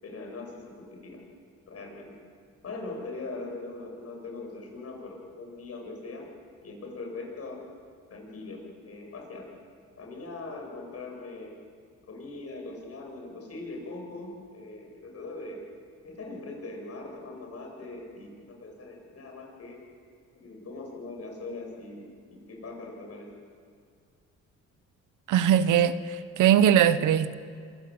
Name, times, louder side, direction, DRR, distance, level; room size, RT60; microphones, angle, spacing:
voice 1, 0.0-1.2 1.7-2.2 2.6-6.3 6.6-7.6 8.1-9.5 10.0-11.5 12.1-15.6 16.0-19.8 20.3-23.3, left 3 dB, 55° left, 7.9 m, -41 dB
voice 2, 25.3-27.3, right 9 dB, 85° right, 1.1 m, -21 dB
26.0 x 15.5 x 8.8 m
cardioid pair, 90°, 30 cm